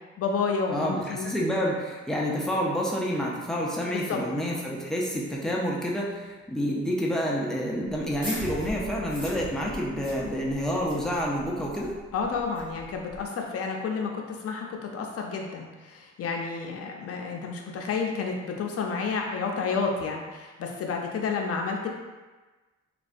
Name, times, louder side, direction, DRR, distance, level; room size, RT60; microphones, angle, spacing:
voice 1, 0.2-1.3 3.9-4.2 12.1-21.9, left 5 dB, 50° left, 1 dB, 0.6 m, -30 dB
voice 2, 0.7-11.9, equal, ahead, -4 dB, 0.5 m, -28 dB
sound 1, 7.9-13.2, equal, 15° right, 1.0 m, -40 dB
3.3 x 2.3 x 2.5 m, 1.3 s
cardioid pair, 90°, 30 cm